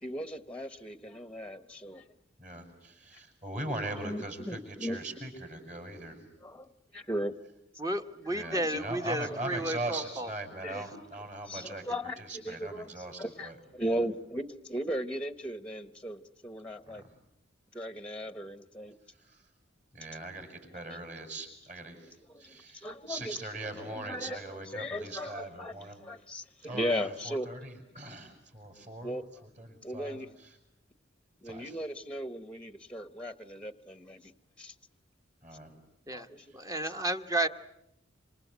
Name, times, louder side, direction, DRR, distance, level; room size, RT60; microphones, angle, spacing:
voice 1, 0.0-2.1 3.1-3.2 4.0-5.3 6.1-7.4 8.4-9.0 9.3-9.6 10.6-11.0 11.5-17.0 17.7-19.0 22.0-23.4 23.8-27.7 29.0-29.5 29.8-30.3 31.4-34.3 34.6-34.7 36.1-36.6 36.8-36.9, equal, 5° left, 13 dB, 1.0 m, -38 dB
voice 2, 2.4-6.2 8.3-11.8 12.2-13.5 16.9-17.0 19.2-19.4 19.9-22.1 22.4-26.0 26.6-29.2 29.6-30.2 31.4-31.7 35.4-35.7 36.5-36.6, right 2 dB, 40° right, 6 dB, 6.7 m, -40 dB
voice 3, 7.8-10.3 11.5-11.7 36.1-36.3 36.5-37.5, right 1 dB, 15° right, 8 dB, 1.2 m, -32 dB
27.5 x 26.5 x 8.1 m, 0.82 s
head